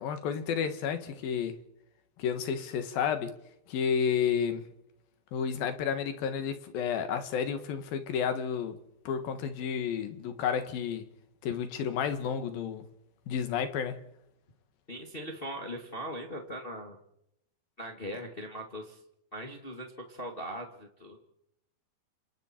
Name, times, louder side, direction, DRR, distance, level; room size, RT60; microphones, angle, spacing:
voice 1, 0.0-1.5 2.2-3.3 3.7-4.6 5.3-8.8 9.0-11.1 11.4-12.8 13.3-14.0, left 7 dB, 60° left, 3.1 m, -31 dB
voice 2, 14.9-17.0 17.8-19.0 19.3-21.2, equal, 35° left, 0.8 m, -40 dB
28.5 x 27.5 x 4.5 m
omnidirectional pair, 5.1 m